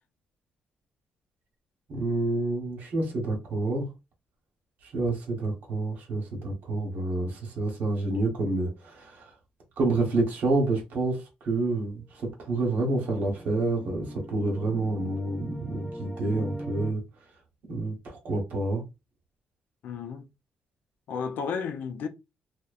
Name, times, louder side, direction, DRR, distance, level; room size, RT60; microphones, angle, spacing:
voice 1, 1.9-3.8 4.8-9.3 9.8-17.0 17.7-18.8, right 2 dB, 65° right, 1.0 m, -28 dB
sound 1, 12.2-16.9, equal, 5° right, 0.3 m, -40 dB
voice 2, 19.8-20.3 21.1-22.1, left 6 dB, 70° left, 0.4 m, -32 dB
2.7 x 2.1 x 2.3 m
cardioid pair, 160°, 3 cm